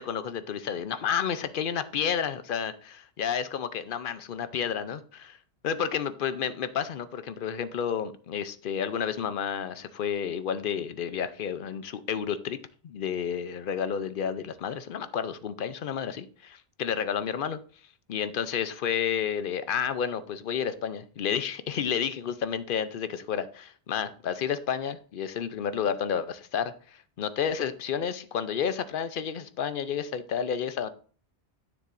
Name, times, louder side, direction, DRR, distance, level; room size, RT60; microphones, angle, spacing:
voice 1, 0.0-5.4 5.6-12.6 12.8-17.6 18.1-30.9, left 8 dB, 60° left, 13 dB, 0.7 m, -31 dB
9.8 x 7.1 x 2.5 m, 0.42 s
omnidirectional pair, 1.1 m